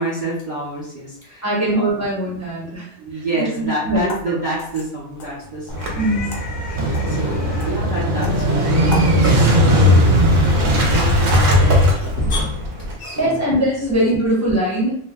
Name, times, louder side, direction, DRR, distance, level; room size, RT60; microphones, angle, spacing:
voice 1, 0.0-2.1 3.0-6.2 6.7-11.9 12.9-13.6, right 2 dB, 45° right, -7 dB, 0.7 m, -29 dB
voice 2, 1.4-4.4 5.9-6.3 13.2-15.0, right 1 dB, 15° left, -6 dB, 0.7 m, -21 dB
sound 1, 3.9-9.2, left 3 dB, 70° left, 1.1 m, -37 dB
sound 2, 5.4-14.1, left 1 dB, 50° left, 0.7 m, -33 dB
Motorcycle / Engine starting, 5.7-12.9, equal, 65° right, 1.0 m, -17 dB
2.7 x 2.1 x 3.4 m, 0.62 s
omnidirectional pair, 1.5 m